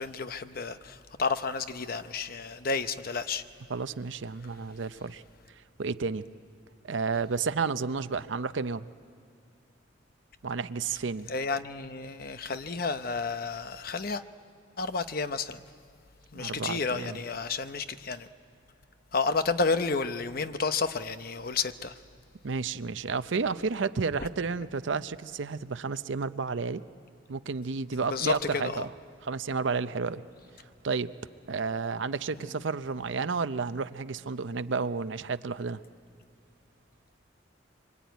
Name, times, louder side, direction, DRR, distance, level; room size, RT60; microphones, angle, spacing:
voice 1, 0.0-3.4 11.3-14.2 14.8-15.6 16.3-18.3 19.1-21.9 28.1-28.3 28.7-28.8, left 4 dB, 50° left, 0.8 m, -31 dB
voice 2, 3.7-5.2 5.8-6.2 6.8-8.9 10.4-11.3 16.3-17.2 22.4-26.8 27.3-28.9 29.2-30.2 30.8-31.1 31.5-35.8, right 4 dB, 75° right, 0.6 m, -31 dB
24.5 x 24.0 x 9.3 m
head